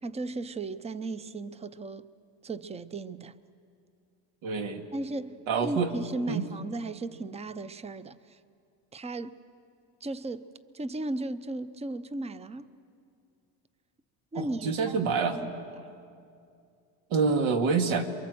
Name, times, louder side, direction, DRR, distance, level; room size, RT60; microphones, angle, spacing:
voice 1, 0.0-2.1 2.4-3.4 4.9-8.4 8.9-9.4 10.0-10.5 10.7-12.7 14.3-15.9, right 2 dB, 15° right, 0.6 m, -36 dB
voice 2, 4.4-4.9 5.5-5.9 6.3-6.4 14.4-15.4 17.1-18.1, right 5 dB, 75° right, 2.3 m, -26 dB
28.5 x 23.5 x 7.8 m
cardioid pair, 110°, 49 cm